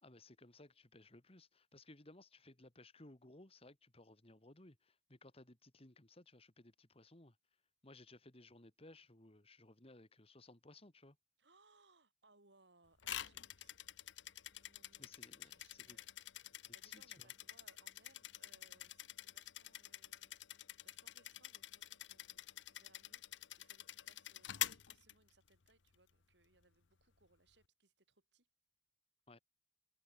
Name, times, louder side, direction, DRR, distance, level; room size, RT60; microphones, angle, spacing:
voice 1, 0.0-7.4 7.8-11.2 15.0-16.0 16.6-17.3 29.3-29.4, left 2 dB, 30° left, 2.3 m, -60 dB
voice 2, 11.4-13.8 14.5-16.2 16.5-28.5, right 3 dB, 70° right, 6.0 m, -72 dB
sound 1, 13.0-25.7, left 12 dB, 85° left, 0.8 m, -48 dB
head